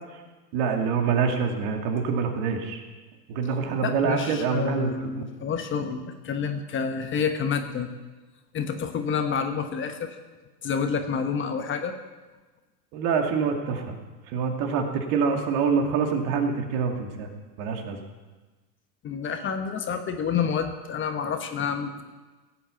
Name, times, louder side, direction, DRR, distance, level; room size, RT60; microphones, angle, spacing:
voice 1, 0.5-2.8 3.3-4.9 5.2-5.3 12.9-14.0 14.3-17.3 17.6-18.0, right 5 dB, 50° right, 3 dB, 2.4 m, -25 dB
voice 2, 3.8-7.9 8.5-10.2 10.6-12.0 19.0-22.0, left 6 dB, 25° left, 6 dB, 1.1 m, -28 dB
17.0 x 8.6 x 7.0 m, 1.3 s
hypercardioid pair, 115°, 50 cm